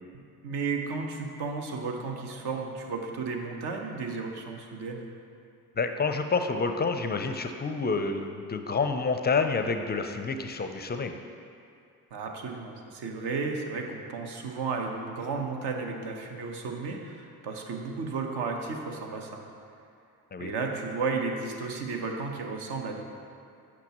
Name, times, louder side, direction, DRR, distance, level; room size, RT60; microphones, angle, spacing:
voice 1, 0.1-5.1 12.1-19.4 20.4-23.0, right 4 dB, 65° right, 2 dB, 0.9 m, -33 dB
voice 2, 5.8-11.1 20.3-20.5, left 4 dB, 25° left, 7 dB, 0.4 m, -28 dB
7.8 x 5.8 x 3.0 m, 2.5 s
hypercardioid pair, 55°, 43 cm